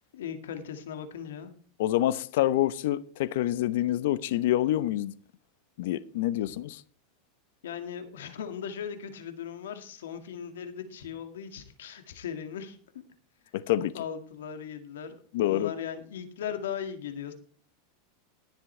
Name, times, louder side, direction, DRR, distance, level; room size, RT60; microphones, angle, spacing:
voice 1, 0.1-1.5 7.6-12.8 13.9-17.3, left 8 dB, 90° left, 2.0 m, -38 dB
voice 2, 1.8-5.1 5.8-6.8 13.5-13.9 15.3-15.7, left 13 dB, 70° left, 0.8 m, -27 dB
21.0 x 7.5 x 3.3 m
supercardioid pair, 130°, 0 cm